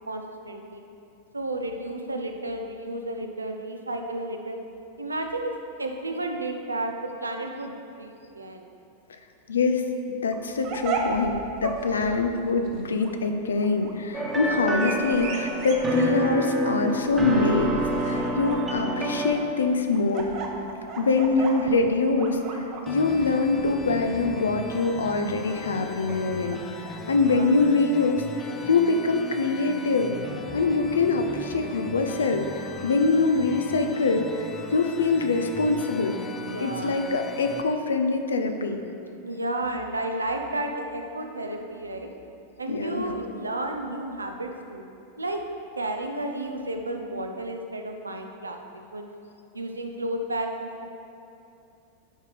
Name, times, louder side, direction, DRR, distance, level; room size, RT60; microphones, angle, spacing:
voice 1, 0.1-0.8 1.3-4.6 5.0-8.7 11.9-12.2 21.0-21.3 27.2-27.5 36.4-36.9 39.2-42.1 42.6-44.8 45.2-45.4 45.8-48.6 48.9-49.1 49.5-50.8, right 1 dB, 80° right, 4 dB, 0.7 m, -32 dB
voice 2, 9.5-9.9 10.2-17.7 18.0-20.3 21.0-22.4 22.9-30.2 30.5-36.2 36.6-38.8 42.7-43.1, left 3 dB, 70° left, 6 dB, 0.6 m, -24 dB
sound 1, 10.3-26.9, right 4 dB, 40° right, 1.0 m, -37 dB
sound 2, 14.1-19.3, right 1 dB, 10° right, 1.2 m, -27 dB
sound 3, 22.9-37.6, left 3 dB, 20° left, 0.6 m, -39 dB
11.0 x 4.9 x 5.0 m, 2.8 s
figure-of-eight pair, 90°, 0 cm